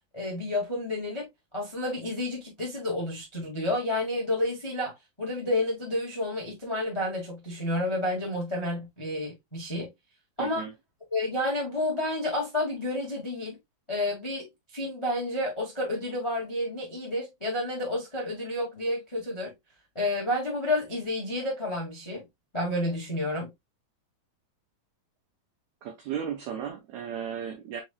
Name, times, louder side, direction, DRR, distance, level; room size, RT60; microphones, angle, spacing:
voice 1, 0.1-1.3 1.5-9.9 10.4-10.6 11.1-13.6 13.9-19.5 19.9-22.2 22.5-23.5, left 1 dB, 20° left, 0.7 m, -30 dB
voice 2, 10.4-10.7 25.8-27.8, right 8 dB, 80° right, 1.6 m, -35 dB
6.0 x 3.9 x 2.2 m
omnidirectional pair, 4.2 m